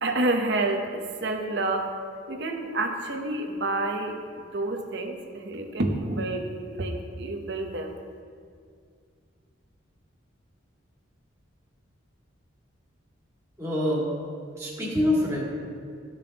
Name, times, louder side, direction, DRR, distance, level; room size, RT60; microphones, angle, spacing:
voice 1, 0.0-1.9 2.3-8.0, right 2 dB, 55° right, 3 dB, 0.8 m, -29 dB
voice 2, 13.6-14.0 14.6-15.4, left 1 dB, 15° right, -6 dB, 2.0 m, -25 dB
14.0 x 5.3 x 2.9 m, 2.2 s
head